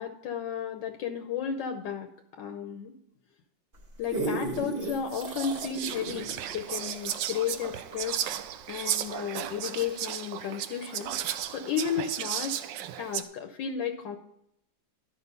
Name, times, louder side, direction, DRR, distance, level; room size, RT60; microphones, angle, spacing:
voice 1, 0.0-2.9 4.0-8.2 8.7-12.6 13.0-14.2, left 8 dB, 80° left, 6 dB, 1.4 m, -33 dB
sound 1, 3.7-8.4 8.9-9.0, right 2 dB, 35° right, 1.4 m, -36 dB
Whispering, 4.5-4.6 5.1-13.2, right 10 dB, 85° right, 1.3 m, -35 dB
11.5 x 5.6 x 5.3 m, 0.75 s
omnidirectional pair, 2.0 m